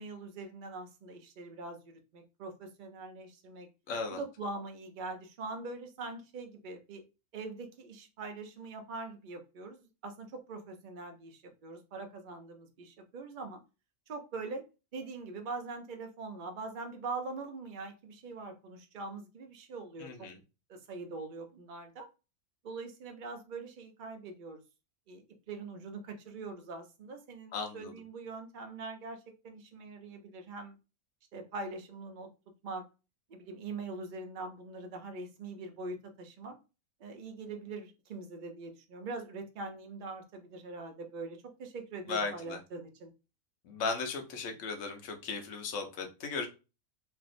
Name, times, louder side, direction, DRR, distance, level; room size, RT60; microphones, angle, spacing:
voice 1, 0.0-3.7 4.1-7.0 7.3-13.6 14.1-14.6 14.9-20.3 20.7-22.1 22.6-24.6 25.1-30.7 31.3-32.3 32.6-32.8 33.3-36.6 37.0-43.1, right 3 dB, 55° right, 5 dB, 0.5 m, -43 dB
voice 2, 3.9-4.2 20.0-20.4 27.5-27.9 42.1-42.6 43.6-46.5, left 4 dB, 65° left, 4 dB, 1.0 m, -36 dB
3.3 x 2.5 x 2.5 m, 0.30 s
omnidirectional pair, 1.5 m